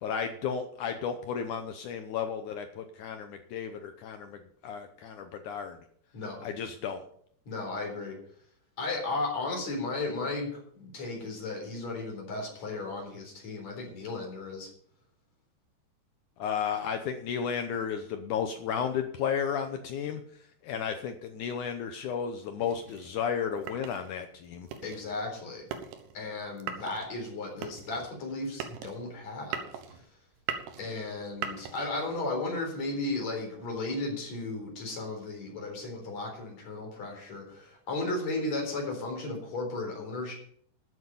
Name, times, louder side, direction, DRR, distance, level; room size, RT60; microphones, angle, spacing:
voice 1, 0.0-5.8 6.4-7.0 16.4-20.2 20.6-24.7, left 7 dB, 80° left, 7 dB, 1.7 m, -33 dB
voice 2, 7.5-8.2 8.8-14.7 24.8-25.7 26.1-30.0 30.8-40.3, left 2 dB, 45° left, 1 dB, 5.0 m, -35 dB
sound 1, 22.6-32.3, right 8 dB, 90° right, 3.3 m, -41 dB
14.0 x 7.9 x 5.5 m, 0.63 s
omnidirectional pair, 4.6 m